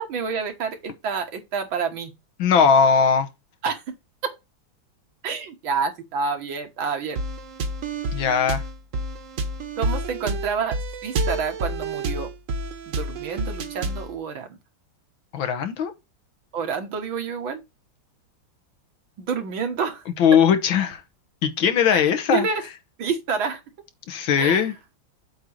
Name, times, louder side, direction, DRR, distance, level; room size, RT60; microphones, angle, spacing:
voice 1, 0.0-2.1 3.6-3.9 4.2-4.3 5.2-7.2 9.8-10.8 11.0-12.3 12.9-14.6 16.5-17.6 19.2-20.0 21.9-22.6 23.0-23.6 24.4-24.7, right 5 dB, 85° right, 2.3 m, -28 dB
voice 2, 2.4-3.3 8.1-8.6 15.3-15.9 20.2-21.0 21.4-22.5 24.1-24.7, left 7 dB, 90° left, 2.0 m, -19 dB
sound 1, 7.2-14.1, right 2 dB, 50° right, 1.1 m, -29 dB
7.9 x 3.0 x 6.2 m
omnidirectional pair, 2.1 m